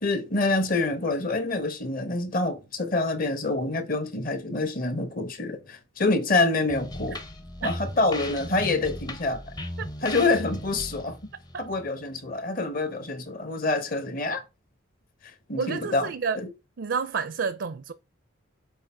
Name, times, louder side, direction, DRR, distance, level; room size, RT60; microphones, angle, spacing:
voice 1, 0.0-7.2 7.6-9.4 10.0-11.2 11.6-14.4 15.5-16.1 16.4-16.5, left 2 dB, 45° left, 1.0 m, -26 dB
sound 1, 6.7-12.3, left 1 dB, 20° left, 0.6 m, -37 dB
voice 2, 15.6-16.4 16.8-17.9, right 5 dB, 60° right, 0.4 m, -29 dB
6.4 x 4.2 x 4.5 m
head